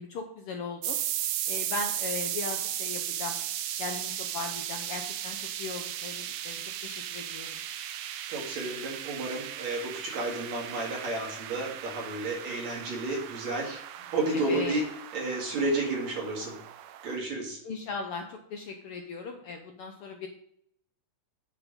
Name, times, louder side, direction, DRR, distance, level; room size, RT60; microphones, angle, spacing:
voice 1, 0.0-3.4 3.8-7.5 14.3-14.9 17.6-20.3, left 4 dB, 85° left, 3 dB, 1.2 m, -38 dB
sound 1, 0.8-17.2, right 11 dB, 90° right, 2.3 m, -36 dB
voice 2, 8.3-13.8 14.1-14.9 15.1-16.5 17.0-17.6, right 2 dB, 60° right, -2 dB, 3.3 m, -31 dB
9.5 x 4.8 x 5.1 m, 0.71 s
omnidirectional pair, 3.7 m